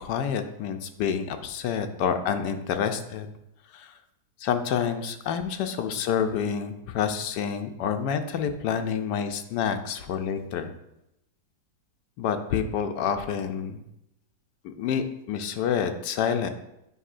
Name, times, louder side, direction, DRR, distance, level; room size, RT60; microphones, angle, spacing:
voice 1, 0.0-3.3 3.7-3.9 4.4-10.7 12.2-13.8 14.6-16.5, left 7 dB, 80° left, 7 dB, 1.2 m, -28 dB
8.2 x 5.4 x 2.5 m, 0.85 s
omnidirectional pair, 1.8 m